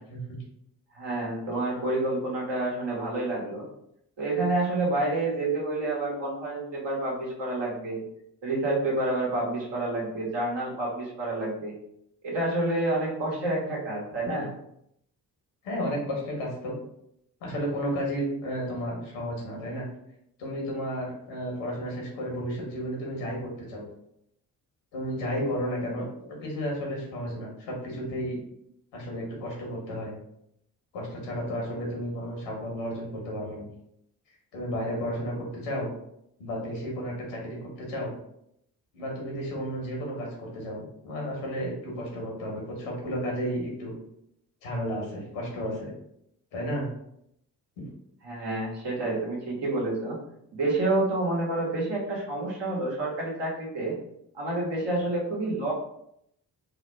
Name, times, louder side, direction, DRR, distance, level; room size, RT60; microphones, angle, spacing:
voice 1, 0.9-3.6 4.2-8.0 8.4-11.7 12.2-14.5 48.2-50.2 50.5-54.0 54.3-55.7, right 2 dB, 65° right, -3 dB, 1.4 m, -28 dB
voice 2, 15.6-16.7 17.4-19.9 20.4-23.8 24.9-28.4 28.9-30.1 30.9-33.7 34.5-35.9 36.4-38.1 38.9-43.9 44.6-45.9 46.5-46.9, equal, 90° left, -1 dB, 1.1 m, -32 dB
3.3 x 2.1 x 3.3 m, 0.75 s
hypercardioid pair, 45°, 48 cm